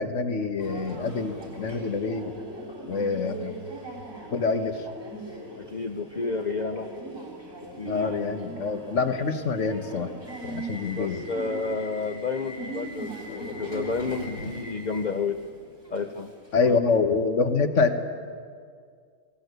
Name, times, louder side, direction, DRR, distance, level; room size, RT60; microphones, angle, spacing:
voice 1, 0.0-2.3 2.9-3.6 4.3-4.8 7.9-10.1 10.4-11.2 16.5-18.0, left 4 dB, 55° left, 7 dB, 1.5 m, -26 dB
Subway metro underground, 0.6-16.6, right 1 dB, 60° right, 4.4 m, -40 dB
voice 2, 5.6-6.9 7.8-8.1 10.9-15.4 15.9-16.3 16.6-16.8, left 4 dB, 40° left, 7 dB, 0.7 m, -31 dB
18.5 x 18.0 x 8.1 m, 2.1 s
omnidirectional pair, 1.5 m